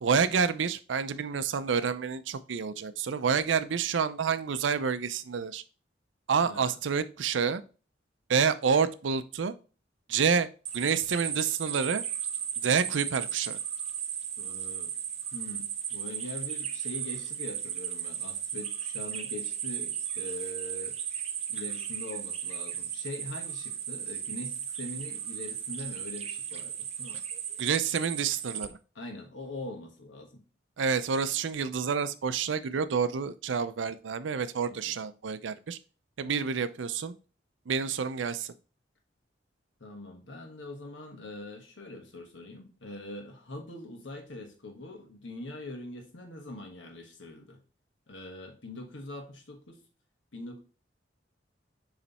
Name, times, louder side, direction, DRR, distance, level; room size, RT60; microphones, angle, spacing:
voice 1, 0.0-5.6 6.3-7.6 8.3-9.5 10.1-10.5 10.7-12.0 12.6-13.6 27.6-28.8 30.8-35.8 36.2-37.1 37.7-38.5, right 6 dB, 90° right, 13 dB, 0.5 m, -28 dB
voice 2, 6.4-6.7 14.4-14.9 15.3-21.0 21.5-27.2 28.9-30.4 34.7-34.9 39.8-47.6 48.1-49.8 50.3-50.6, left 2 dB, 90° left, 4 dB, 1.3 m, -43 dB
sound 1, 10.7-28.7, right 9 dB, 35° right, 0.5 m, -35 dB
7.0 x 3.2 x 4.1 m, 0.36 s
head